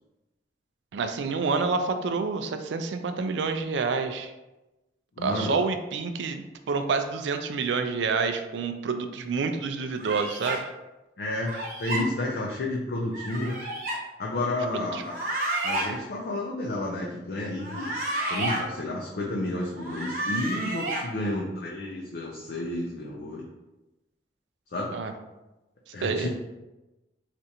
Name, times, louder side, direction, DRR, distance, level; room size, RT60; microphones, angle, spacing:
voice 1, 0.9-4.3 5.2-10.7 14.7-15.0 24.9-25.1 26.0-26.3, right 4 dB, 80° right, 7 dB, 0.4 m, -28 dB
voice 2, 5.2-5.6 11.2-13.6 14.2-15.1 15.6-18.0 18.3-23.4 24.7-24.9 25.9-26.3, left 1 dB, 60° left, -3 dB, 0.4 m, -31 dB
sound 1, 10.0-10.6 11.5-12.0 13.1-14.0 15.0-15.9 17.6-18.6 19.7-21.0, right 1 dB, 50° right, 0.8 m, -31 dB
4.4 x 2.5 x 2.7 m, 1.0 s
head